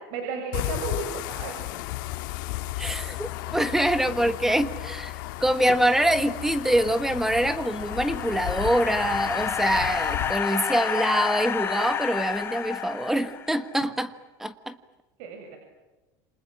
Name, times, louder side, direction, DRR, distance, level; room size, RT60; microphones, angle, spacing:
voice 1, 0.1-1.6 3.0-3.1 3.5-3.7 15.2-15.6, right 4 dB, 65° right, 4 dB, 7.6 m, -34 dB
sound 1, 0.5-10.3, left 16 dB, 70° left, 2.4 m, -34 dB
voice 2, 2.8-5.1 5.4-14.8, right 1 dB, 5° right, 11 dB, 1.4 m, -25 dB
sound 2, 7.5-13.7, left 7 dB, 20° left, 2.3 m, -30 dB
29.0 x 27.0 x 7.6 m, 1.1 s
cardioid pair, 160°, 11 cm